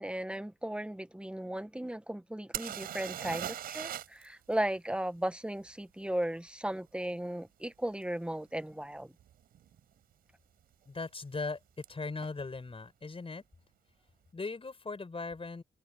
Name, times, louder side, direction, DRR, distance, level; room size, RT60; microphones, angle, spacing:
voice 1, 0.0-9.1, right 1 dB, 5° right, 1.6 m, -36 dB
sound 1, 2.5-4.2 4.5-4.6 8.0-8.1 8.8-8.9 9.2-9.8 11.8-11.9 12.2-12.3, right 11 dB, 85° right, 6.2 m, -39 dB
voice 2, 10.9-11.6 11.9-13.4 14.3-15.6, left 3 dB, 40° left, 6.0 m, -39 dB
supercardioid pair, 50°, 15 cm